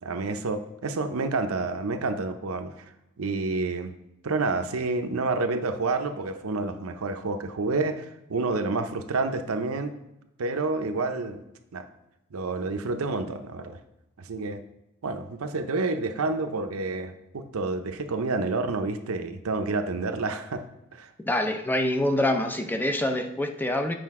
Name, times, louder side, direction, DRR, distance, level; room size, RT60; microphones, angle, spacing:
voice 1, 0.0-2.9 3.2-3.9 4.2-9.9 10.4-11.4 11.7-11.8 12.3-13.8 14.2-14.6 15.0-20.6 20.9-21.1, right 3 dB, 85° right, 7 dB, 0.6 m, -29 dB
voice 2, 21.2-23.9, left 1 dB, 10° left, 6 dB, 0.5 m, -26 dB
7.7 x 5.0 x 3.6 m, 0.90 s
head